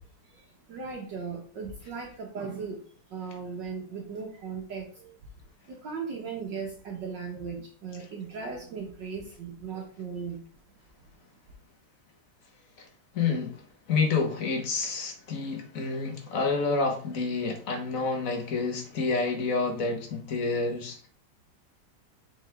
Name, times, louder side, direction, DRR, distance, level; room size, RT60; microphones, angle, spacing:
voice 1, 0.2-2.8 3.1-5.2 5.7-10.4, right 5 dB, 60° right, 1.7 m, -37 dB
voice 2, 13.1-13.6 13.9-21.1, left 4 dB, 45° left, 1.6 m, -28 dB
7.0 x 4.4 x 3.5 m
omnidirectional pair, 2.3 m